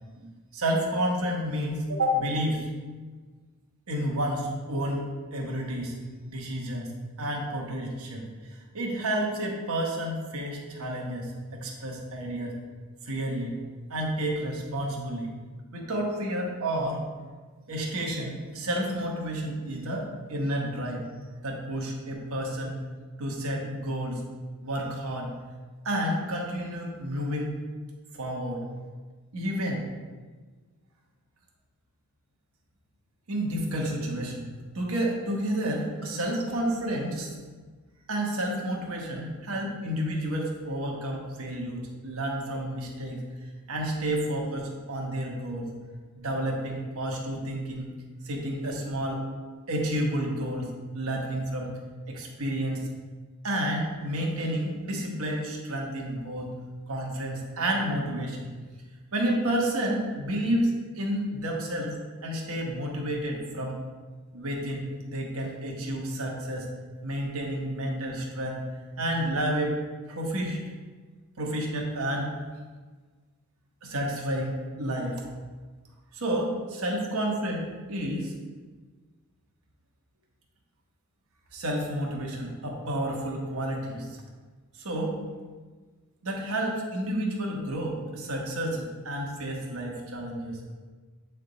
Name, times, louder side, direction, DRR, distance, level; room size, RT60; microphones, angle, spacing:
voice 1, 0.5-2.7 3.9-6.0 6.3-8.3 8.7-12.6 13.1-13.6 13.9-15.3 15.7-17.0 17.7-21.0 21.4-22.8 23.2-24.2 24.6-25.3 25.8-27.5 28.1-28.6 29.3-29.9 33.3-34.5 34.7-37.3 38.1-43.2 43.7-45.7 46.1-47.9 48.2-49.2 49.7-51.7 52.1-52.8 53.4-56.5 56.9-58.4 59.1-63.8 64.3-66.7 67.0-68.6 69.0-69.8 70.1-70.6 71.4-72.3 73.8-75.2 76.1-78.3 81.5-84.1 84.8-85.2 86.2-90.8, right 1 dB, 70° right, -1 dB, 1.1 m, -30 dB
8.0 x 3.4 x 3.9 m, 1.4 s
head